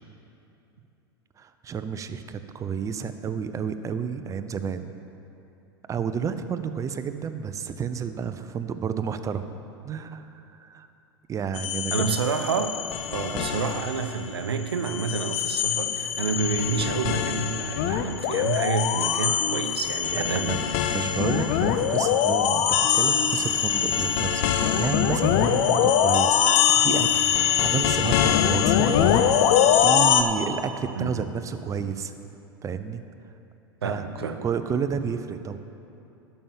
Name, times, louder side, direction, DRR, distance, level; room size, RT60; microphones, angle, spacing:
voice 1, 1.4-4.9 5.9-9.4 9.8-10.9 11.3-12.2 13.3-13.5 20.1-22.7 22.9-32.1 32.6-33.0 33.8-35.6, right 7 dB, 25° right, 10 dB, 0.7 m, -31 dB
sound 1, 11.5-14.3 14.6-30.2, left 9 dB, 55° left, 0.7 m, -23 dB
voice 2, 11.9-12.8 13.1-20.6 30.9-31.3 33.8-34.5, right 5 dB, 85° right, 7 dB, 0.8 m, -29 dB
12.5 x 5.7 x 7.2 m, 2.8 s
hypercardioid pair, 95°, 13 cm